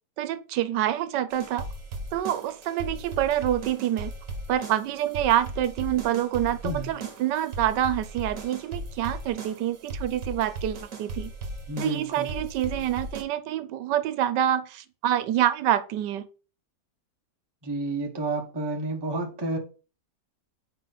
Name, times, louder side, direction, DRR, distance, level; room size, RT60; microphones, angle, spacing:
voice 1, 0.2-1.7 2.1-4.1 4.5-11.3 11.8-16.3, right 11 dB, 85° right, 1.3 m, -27 dB
sound 1, 1.3-13.2, right 2 dB, 55° right, 1.5 m, -37 dB
voice 2, 11.7-12.3 17.6-19.6, right 2 dB, 20° right, 0.8 m, -30 dB
4.5 x 3.9 x 5.6 m
omnidirectional pair, 1.8 m